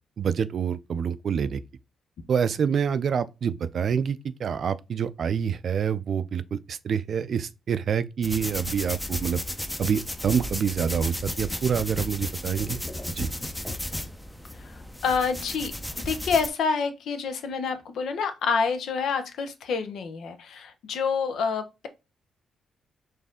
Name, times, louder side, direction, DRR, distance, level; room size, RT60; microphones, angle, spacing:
voice 1, 0.2-1.6 2.3-9.4 9.8-12.8 13.2-13.3, right 7 dB, 60° right, 0.4 m, -27 dB
sound 1, 8.2-16.5, left 1 dB, 10° left, 0.6 m, -34 dB
voice 2, 14.6-21.9, left 5 dB, 75° left, 0.7 m, -28 dB
4.1 x 2.7 x 3.6 m
cardioid pair, 70°, 0 cm